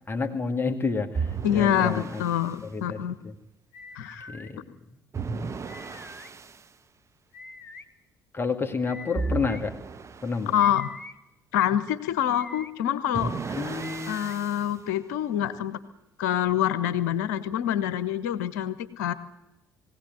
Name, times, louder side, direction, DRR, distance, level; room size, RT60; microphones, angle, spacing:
voice 1, 0.1-2.2 2.6-3.3 4.3-4.6 8.3-9.8 10.2-10.5 13.5-14.3, left 4 dB, 25° left, 4 dB, 2.3 m, -30 dB
sound 1, 1.1-2.6 5.1-6.6 9.1-10.5 13.1-14.7, right 4 dB, 30° right, 1.3 m, -34 dB
voice 2, 1.4-3.2 3.9-4.3 10.5-10.9 11.5-15.8 16.2-19.1, left 10 dB, 70° left, 14 dB, 1.2 m, -26 dB
sound 2, 3.7-4.5 5.7-6.3 7.3-7.8 8.8-9.6 10.6-11.1 12.2-12.7 13.8-14.4, left 3 dB, 85° left, 1.0 m, -45 dB
20.5 x 17.0 x 9.6 m, 0.92 s
figure-of-eight pair, 50°, 9 cm